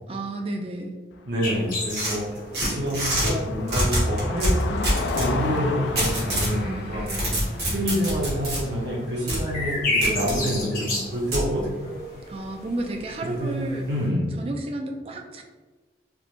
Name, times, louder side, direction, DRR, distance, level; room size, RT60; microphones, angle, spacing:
voice 1, 0.1-1.0 6.3-7.4 12.3-13.9 14.4-15.4, right 2 dB, 30° right, 3 dB, 0.3 m, -32 dB
Car passing by, 1.1-9.4, left 3 dB, 80° left, 0.3 m, -34 dB
voice 2, 1.3-2.2 2.6-7.0 7.6-11.9 13.2-13.6 13.9-14.3, equal, 80° right, -3 dB, 0.7 m, -27 dB
sound 1, 1.4-14.1, left 1 dB, 50° left, 0.9 m, -34 dB
sound 2, 1.9-3.3 3.7-5.3 6.0-6.5 6.9-8.6 9.3-9.4 10.0-10.4 11.3-11.5, equal, 60° right, 1.2 m, -25 dB
3.3 x 3.0 x 2.5 m, 1.3 s
head